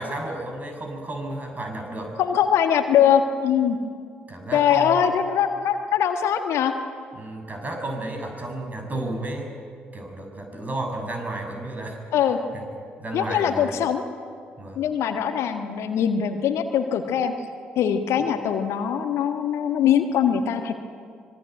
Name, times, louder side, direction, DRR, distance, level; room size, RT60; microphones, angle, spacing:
voice 1, 0.0-2.2 4.3-5.1 7.1-9.5 9.9-12.0 12.5-12.6 13.0-13.7 14.6-14.8, right 1 dB, 30° right, 3 dB, 7.0 m, -32 dB
voice 2, 2.2-3.8 4.5-6.7 12.1-12.4 13.1-14.1 14.7-17.3 17.7-20.7, left 8 dB, 60° left, 7 dB, 1.6 m, -22 dB
25.0 x 21.5 x 9.3 m, 2.2 s
figure-of-eight pair, 45°, 5 cm